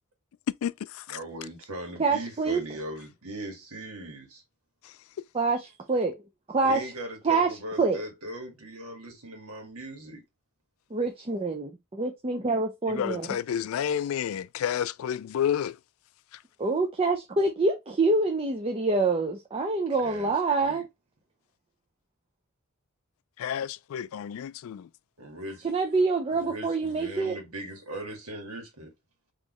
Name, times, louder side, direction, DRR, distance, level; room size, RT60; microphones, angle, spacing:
voice 1, 1.1-4.4 6.6-10.2 20.0-20.3 20.6-20.8 25.2-25.7 26.3-28.9, right 1 dB, 80° right, 1.7 m, -39 dB
voice 2, 2.0-2.6 5.3-6.2 6.5-6.9 7.2-8.1 10.9-13.3 16.6-20.9 25.6-27.4, right 3 dB, 25° right, 0.6 m, -26 dB
voice 3, 12.9-15.8 23.4-24.9, left 9 dB, 65° left, 0.3 m, -30 dB
4.3 x 3.1 x 3.0 m
head